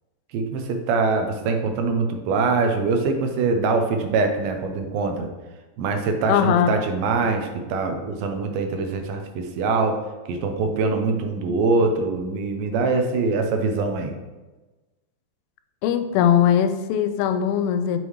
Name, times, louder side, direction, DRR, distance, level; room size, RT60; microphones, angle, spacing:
voice 1, 0.3-5.3 5.8-10.0 10.3-14.1, right 4 dB, 85° right, 5 dB, 2.6 m, -23 dB
voice 2, 6.3-6.8 15.8-18.0, left 9 dB, 90° left, 9 dB, 2.4 m, -20 dB
6.7 x 6.3 x 3.1 m, 1.2 s
omnidirectional pair, 4.1 m